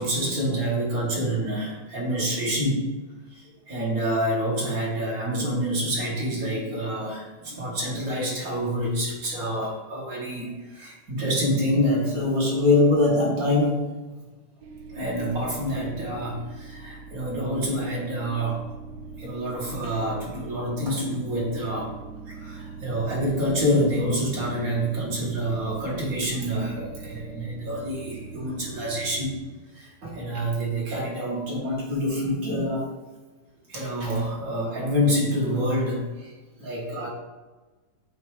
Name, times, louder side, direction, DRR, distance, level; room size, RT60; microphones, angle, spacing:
voice 1, 0.0-2.9 3.3-13.8 14.9-18.6 19.2-21.9 22.3-29.4 29.7-32.9 33.7-36.3 36.6-37.1, equal, 45° right, -3 dB, 1.8 m, -26 dB
sound 1, 14.6-29.4, right 5 dB, 80° right, 0.8 m, -41 dB
7.8 x 2.7 x 4.7 m, 1.2 s
omnidirectional pair, 2.2 m